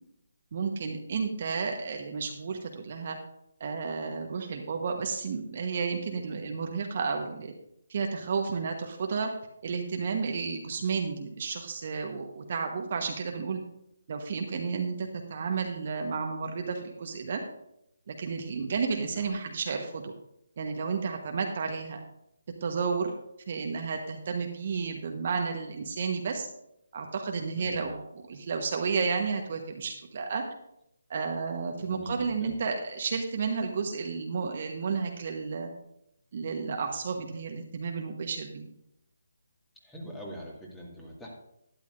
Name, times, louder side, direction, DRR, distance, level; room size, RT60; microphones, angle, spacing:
voice 1, 0.5-3.2 3.6-7.5 7.9-9.3 9.6-13.6 14.1-17.4 18.1-20.1 20.6-22.0 22.6-23.1 23.5-26.5 26.9-28.0 28.3-30.4 31.1-35.7 36.3-38.7, right 5 dB, 45° right, 3 dB, 1.1 m, -32 dB
voice 2, 27.5-28.0 31.8-32.6 39.8-41.3, equal, 5° left, -3 dB, 2.0 m, -42 dB
12.0 x 10.5 x 2.6 m, 0.79 s
figure-of-eight pair, 150°, 0 cm